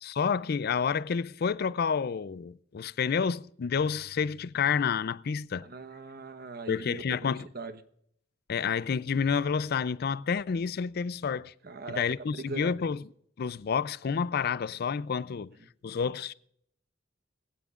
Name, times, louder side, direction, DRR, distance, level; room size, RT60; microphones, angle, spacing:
voice 1, 0.0-5.7 6.7-7.5 8.5-11.5 11.9-13.0 13.4-15.5 15.8-16.3, left 6 dB, 55° left, 0.4 m, -29 dB
voice 2, 5.6-7.8 11.6-12.0 12.3-12.9, right 3 dB, 55° right, 1.1 m, -41 dB
21.0 x 16.0 x 2.5 m
head